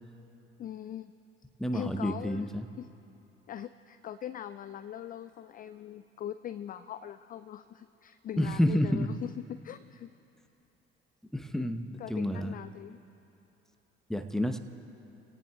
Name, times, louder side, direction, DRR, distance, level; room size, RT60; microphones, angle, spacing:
voice 1, 0.6-1.1 1.7-2.5 2.8-2.9 3.5-10.1 12.0-13.0, left 10 dB, 30° left, 12 dB, 0.4 m, -41 dB
voice 2, 1.6-2.7 8.4-9.1 11.3-12.6 14.1-14.6, equal, ahead, 7 dB, 1.0 m, -29 dB
29.5 x 18.0 x 2.4 m, 2.9 s
figure-of-eight pair, 55°, 31 cm